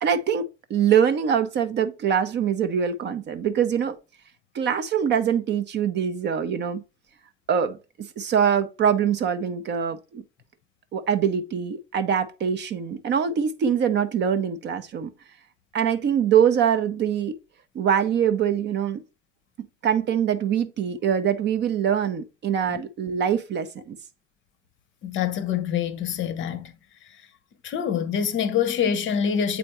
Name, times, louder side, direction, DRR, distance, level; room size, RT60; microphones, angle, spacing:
voice 1, 0.0-4.0 4.5-6.8 7.5-10.2 10.9-15.1 15.7-17.4 17.7-19.0 19.8-24.0, right 8 dB, 30° right, 0.6 m, -23 dB
voice 2, 25.0-26.7 27.6-29.6, left 8 dB, 35° left, 0.8 m, -25 dB
8.1 x 4.2 x 2.9 m
figure-of-eight pair, 75°, 36 cm